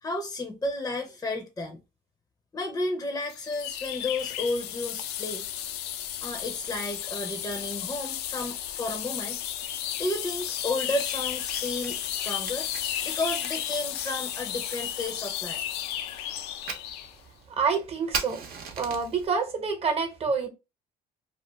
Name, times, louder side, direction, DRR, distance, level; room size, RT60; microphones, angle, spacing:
voice 1, 0.0-1.8 2.5-5.5 6.2-9.4 10.0-12.7 13.0-15.6, left 2 dB, 20° left, 0.6 m, -32 dB
sound 1, 3.3-17.2, left 11 dB, 80° left, 0.4 m, -33 dB
Fire, 10.9-19.3, right 5 dB, 65° right, 0.8 m, -41 dB
voice 2, 17.6-18.4 18.8-20.5, right 5 dB, 35° right, 0.9 m, -27 dB
2.4 x 2.4 x 3.3 m
cardioid pair, 110°, 17 cm